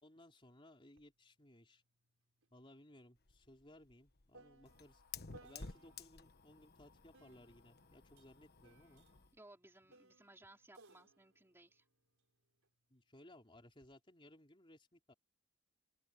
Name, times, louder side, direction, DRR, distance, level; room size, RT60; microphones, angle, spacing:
voice 1, 0.0-1.8 2.5-9.0 12.9-15.1, left 1 dB, 25° left, 4.0 m, -62 dB
sound 1, 1.0-1.1 1.4-6.2 7.1-12.7 13.5-13.9, right 2 dB, 70° right, 5.0 m, -66 dB
Fire, 3.2-9.4, left 5 dB, 45° left, 1.2 m, -55 dB
voice 2, 9.3-11.9, right 2 dB, 10° right, 3.7 m, -62 dB
open air
head